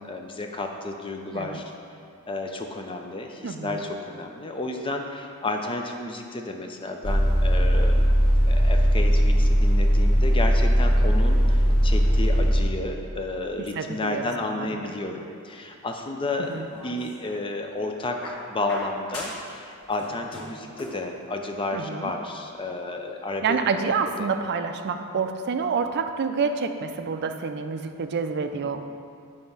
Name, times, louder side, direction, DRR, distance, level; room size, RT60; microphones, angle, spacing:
voice 1, 0.0-1.6 2.3-8.2 8.5-23.6 24.2-24.3 28.6-28.7, left 2 dB, 25° left, 3 dB, 0.5 m, -32 dB
voice 2, 3.4-3.9 13.7-14.3 14.6-14.8 16.4-16.7 21.7-22.1 23.4-28.9, right 5 dB, 50° right, 7 dB, 0.4 m, -28 dB
sound 1, 7.0-12.6, equal, 65° left, 1.1 m, -19 dB
sound 2, 16.4-17.4 18.2-19.6 19.8-21.1 22.2-22.3, left 1 dB, 90° left, 1.6 m, -40 dB
7.3 x 3.4 x 5.5 m, 2.5 s
head